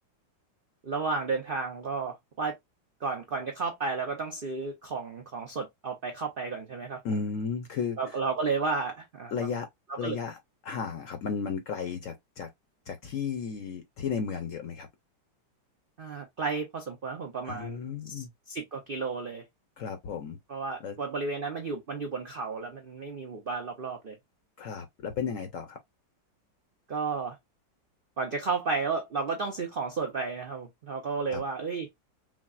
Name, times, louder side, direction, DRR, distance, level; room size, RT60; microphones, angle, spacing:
voice 1, 0.8-2.6 3.0-7.2 8.0-9.6 9.9-10.2 16.0-17.8 18.1-19.4 20.5-24.2 26.9-27.4 28.2-31.9, right 4 dB, 80° right, 0.4 m, -33 dB
voice 2, 7.0-8.0 9.3-9.7 10.0-12.5 12.9-14.9 17.5-18.3 19.8-20.4 20.8-21.0 24.6-25.8 31.3-31.4, left 6 dB, 65° left, 0.8 m, -34 dB
6.0 x 2.0 x 2.3 m
omnidirectional pair, 1.9 m